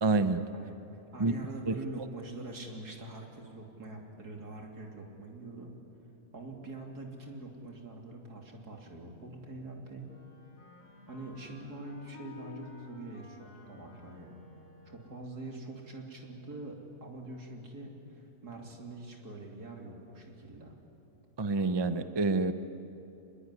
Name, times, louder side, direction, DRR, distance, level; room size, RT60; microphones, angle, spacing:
voice 1, 0.0-0.4 1.2-1.3 1.7-1.8 21.4-22.5, right 3 dB, 25° right, 10 dB, 0.6 m, -27 dB
voice 2, 1.1-5.7 6.3-10.1 11.1-14.4 14.9-20.8, right 2 dB, 75° right, 1 dB, 3.6 m, -44 dB
Wind instrument woodwind instrument, 10.0-15.4, left 4 dB, 80° left, 5.0 m, -53 dB
25.5 x 21.0 x 9.9 m, 2.9 s
omnidirectional pair, 1.7 m